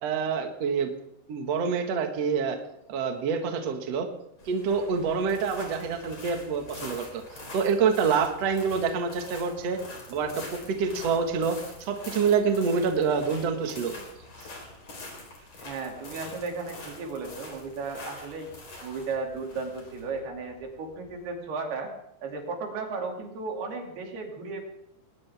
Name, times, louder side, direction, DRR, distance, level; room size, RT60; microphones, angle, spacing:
voice 1, 0.0-0.9 1.3-2.6 2.9-4.1 4.4-9.8 10.1-14.0, right 5 dB, 80° right, 4 dB, 1.4 m, -27 dB
sound 1, 4.4-21.3, left 2 dB, 35° left, 5.0 m, -45 dB
voice 2, 15.6-18.5 18.8-21.9 22.2-24.6, right 4 dB, 55° right, 2 dB, 4.4 m, -35 dB
20.5 x 19.5 x 3.6 m, 0.78 s
omnidirectional pair, 5.9 m